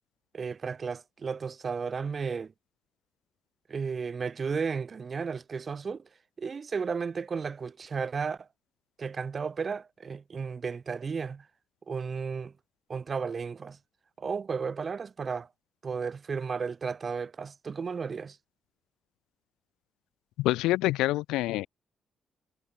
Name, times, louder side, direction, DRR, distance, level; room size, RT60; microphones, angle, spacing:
voice 1, 0.3-2.5 3.7-6.0 6.4-8.5 9.0-11.5 11.9-12.5 12.9-13.8 14.2-15.5 15.8-18.4, right 5 dB, 45° right, 1.1 m, -33 dB
voice 2, 20.4-21.7, left 17 dB, 85° left, 0.4 m, -26 dB
supercardioid pair, 55°, 0 cm